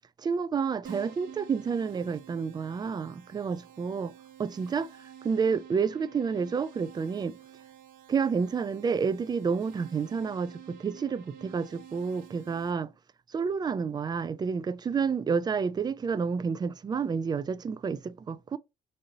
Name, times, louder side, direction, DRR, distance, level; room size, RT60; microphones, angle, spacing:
voice 1, 0.2-4.1 4.4-4.9 5.2-7.4 8.1-12.9 13.3-18.6, right 5 dB, 25° right, 0.3 m, -29 dB
Keyboard (musical), 0.8-12.7, right 9 dB, 55° right, 0.7 m, -50 dB
4.2 x 2.7 x 3.9 m
cardioid pair, 110°, 17 cm